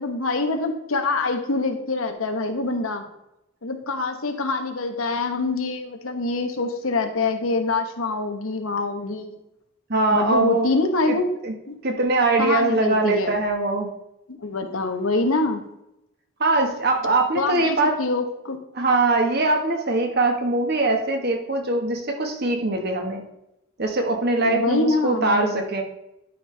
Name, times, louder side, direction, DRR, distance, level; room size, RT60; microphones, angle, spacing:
voice 1, 0.0-3.0 3.6-9.3 10.1-11.3 11.7-11.8 12.4-13.3 14.3-15.6 17.3-18.6 24.4-25.6, left 3 dB, 85° left, 6 dB, 1.1 m, -25 dB
voice 2, 9.9-10.7 11.1-11.2 11.4-11.5 11.8-13.9 16.4-18.0 18.7-23.2 23.8-25.8, right 2 dB, 50° right, 3 dB, 1.3 m, -22 dB
11.5 x 5.3 x 3.3 m, 0.85 s
head